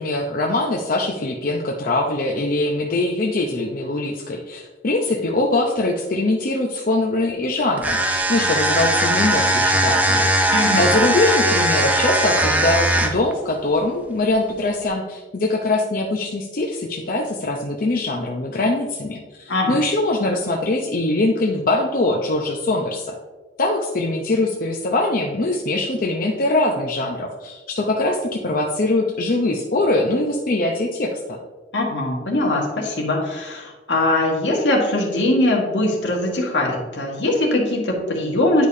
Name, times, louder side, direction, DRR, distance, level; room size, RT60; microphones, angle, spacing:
voice 1, 0.0-23.2 23.6-31.4, left 2 dB, 50° left, 0 dB, 0.6 m, -22 dB
sound 1, 7.8-13.3, right 1 dB, 10° right, 0.5 m, -19 dB
voice 2, 10.5-10.9 19.5-19.8 31.7-38.7, left 1 dB, 80° left, 0 dB, 1.6 m, -21 dB
10.0 x 4.9 x 2.7 m, 1.2 s
head